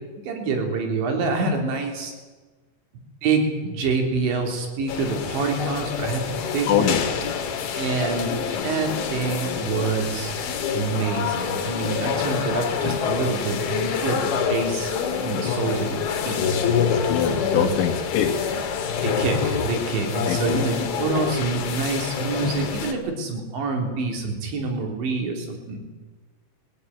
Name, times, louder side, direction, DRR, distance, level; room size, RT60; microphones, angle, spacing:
voice 1, 0.2-2.1 3.2-6.9 7.8-10.3 10.7-14.9 15.2-16.4 17.4-17.7 19.0-25.8, right 4 dB, 75° right, 2 dB, 5.7 m, -26 dB
sound 1, 4.9-22.9, left 7 dB, 60° left, 3.6 m, -26 dB
voice 2, 6.7-7.1 12.8-13.0 17.1-18.3 20.3-20.6, left 9 dB, 75° left, -5 dB, 4.1 m, -23 dB
21.5 x 17.0 x 9.5 m, 1.3 s
omnidirectional pair, 5.3 m